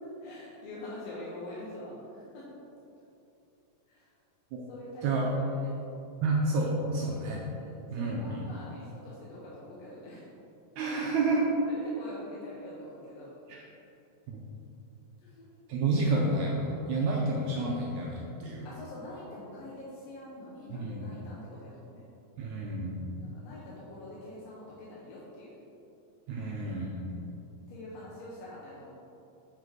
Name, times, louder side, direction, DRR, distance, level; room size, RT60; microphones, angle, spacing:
voice 1, 0.0-2.5 3.9-4.1 4.7-5.1 5.6-5.7 7.0-7.3 7.5-10.3 11.7-13.3 15.2-15.5 18.6-22.0 23.2-25.5 27.7-28.9, left 1 dB, 65° left, -7 dB, 1.8 m, -45 dB
voice 2, 6.2-7.4 7.9-8.5 10.8-11.5 13.5-13.6 14.3-14.4 15.7-18.7 20.7-21.1 22.4-23.1 26.3-27.1, right 2 dB, 75° right, -2 dB, 1.8 m, -30 dB
9.4 x 3.9 x 4.8 m, 2.8 s
omnidirectional pair, 3.8 m